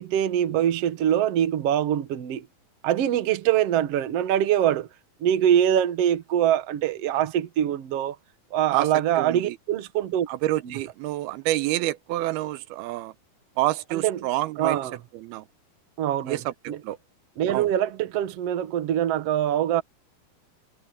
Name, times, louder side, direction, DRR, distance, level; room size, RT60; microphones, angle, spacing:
voice 1, 0.0-2.5 2.8-4.9 5.2-8.2 8.5-10.3 10.6-10.8 13.9-14.2 14.6-15.0 16.0-16.4 16.7-16.8 17.4-19.8, right 10 dB, 55° right, 1.8 m, -23 dB
voice 2, 9.2-9.6 10.3-13.1 13.6-14.8 15.1-15.4 16.3-17.0 17.5-17.7, right 16 dB, 85° right, 2.7 m, -28 dB
omnidirectional pair, 4.4 m